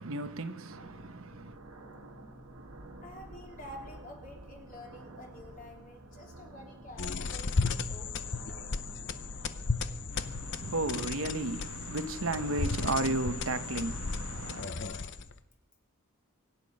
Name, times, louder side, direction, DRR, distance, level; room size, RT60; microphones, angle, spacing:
voice 1, 0.0-1.6 10.1-14.7, right 2 dB, 70° right, 1.0 m, -34 dB
sound 1, 0.7-14.6, right 2 dB, 90° right, 2.1 m, -50 dB
voice 2, 3.0-8.1, left 1 dB, 35° left, 3.1 m, -49 dB
sound 2, 7.0-15.4, left 4 dB, 55° left, 0.8 m, -35 dB
24.5 x 9.1 x 5.3 m
head